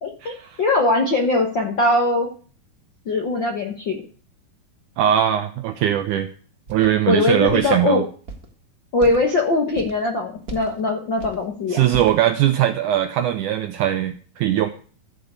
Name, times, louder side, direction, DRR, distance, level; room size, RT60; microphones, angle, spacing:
voice 1, 0.0-2.3 3.0-4.0 7.1-8.0 8.9-11.8, left 2 dB, 60° left, 2 dB, 1.2 m, -21 dB
voice 2, 5.0-6.3 6.7-8.0 11.7-14.7, right 11 dB, 80° right, 8 dB, 1.8 m, -20 dB
sound 1, 6.7-6.9 7.5-7.7 8.3-8.5 9.0-9.2 9.7-10.0 10.4-10.8 11.1-11.4 11.9-12.2, right 3 dB, 40° right, 1.4 m, -35 dB
14.0 x 5.0 x 8.0 m, 0.42 s
omnidirectional pair, 4.3 m